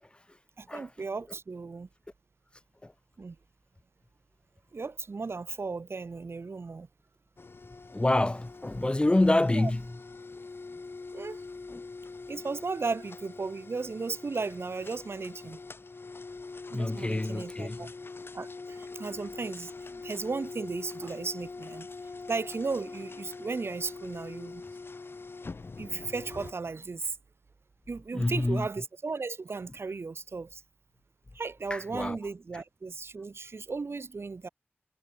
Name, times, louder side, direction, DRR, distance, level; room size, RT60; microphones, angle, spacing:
voice 1, 0.6-1.9 3.2-3.4 4.7-6.9 9.5-9.7 11.1-11.4 12.3-15.6 16.7-17.9 18.3-21.9 22.3-24.6 25.8-27.2 27.9-30.6 31.3-34.5, right 4 dB, 65° right, 4.0 m, -35 dB
sound 1, 7.4-26.5, left 3 dB, 55° left, 4.9 m, -44 dB
voice 2, 7.9-9.8 11.7-11.8 16.7-17.8 28.1-28.7 31.7-32.2, left 2 dB, 20° left, 0.8 m, -27 dB
wide cardioid pair, 95°, 4 cm